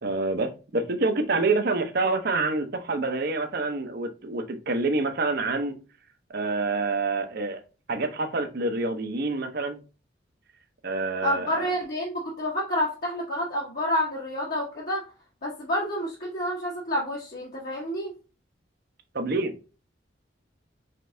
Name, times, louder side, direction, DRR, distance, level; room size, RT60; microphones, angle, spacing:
voice 1, 0.0-5.8 6.3-7.6 7.9-9.8 10.8-11.7 19.1-19.5, right 3 dB, 60° right, 7 dB, 0.8 m, -27 dB
voice 2, 11.2-15.0 15.4-18.1, left 1 dB, 55° left, -5 dB, 1.2 m, -29 dB
5.2 x 3.3 x 2.6 m, 0.32 s
head